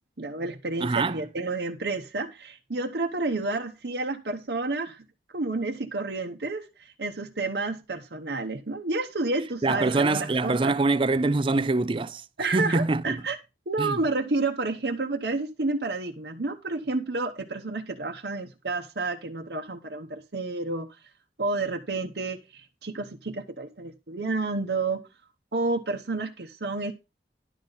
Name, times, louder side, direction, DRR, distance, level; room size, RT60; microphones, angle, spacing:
voice 1, 0.2-5.0 5.3-10.7 12.4-13.4 13.7-20.9 21.4-25.0 25.5-26.9, right 3 dB, 75° right, 1.0 m, -30 dB
voice 2, 0.8-1.2 9.6-13.2 13.8-14.0, right 3 dB, 30° right, 0.4 m, -25 dB
11.0 x 4.0 x 7.0 m
head